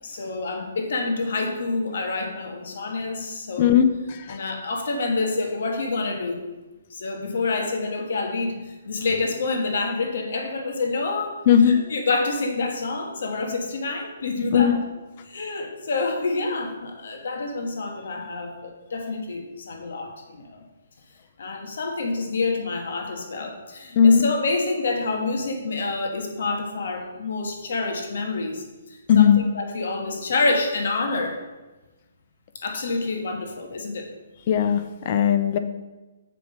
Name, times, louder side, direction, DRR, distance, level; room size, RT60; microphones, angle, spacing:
voice 1, 0.0-3.7 4.3-6.4 6.9-11.4 11.7-14.8 15.2-20.6 21.4-31.4 32.6-34.1, left 3 dB, 60° left, 2 dB, 1.4 m, -27 dB
voice 2, 3.6-4.4 11.5-11.8 14.5-14.7 24.0-24.2 29.1-29.4 34.5-35.6, left 8 dB, 30° left, 9 dB, 0.5 m, -17 dB
7.5 x 5.1 x 5.1 m, 1.1 s
hypercardioid pair, 170°, 0 cm